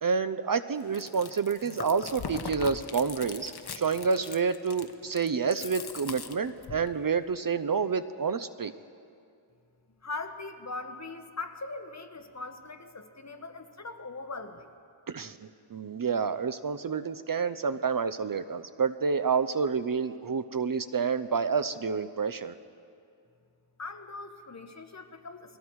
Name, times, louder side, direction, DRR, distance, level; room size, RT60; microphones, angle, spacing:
voice 1, 0.0-8.7 15.1-15.4 15.7-22.5, right 5 dB, 45° right, 12 dB, 0.7 m, -29 dB
Chewing mastication, 0.8-6.9, left 5 dB, 50° left, 1.1 m, -41 dB
voice 2, 10.0-14.7 23.8-25.6, left 3 dB, 35° left, 6 dB, 1.3 m, -40 dB
28.5 x 21.5 x 4.8 m, 2.4 s
wide cardioid pair, 130°, 48 cm